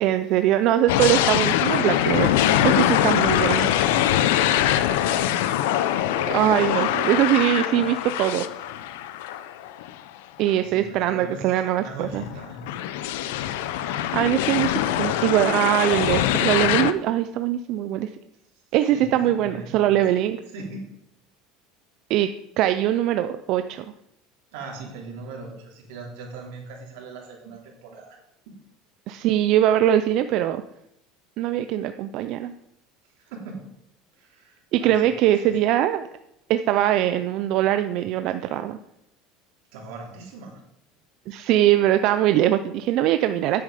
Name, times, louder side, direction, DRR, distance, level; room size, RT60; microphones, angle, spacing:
voice 1, 0.0-3.7 6.3-8.5 10.4-12.2 13.9-18.1 18.7-20.4 22.1-22.3 22.6-23.8 29.1-30.6 31.4-32.5 34.7-36.0 36.5-38.8 41.3-43.6, right 12 dB, 50° right, 10 dB, 0.4 m, -22 dB
sound 1, 0.9-9.9 10.5-10.6 12.0-16.9, left 12 dB, 90° left, 0.6 m, -23 dB
voice 2, 3.4-5.1 10.6-12.6 18.9-20.0 20.5-20.9 24.5-28.2 28.5-28.6 33.2-33.7 34.2-35.5 39.7-40.6, right 3 dB, 80° right, -1 dB, 3.3 m, -39 dB
9.9 x 7.9 x 5.0 m, 0.80 s
cardioid pair, 160°, 0 cm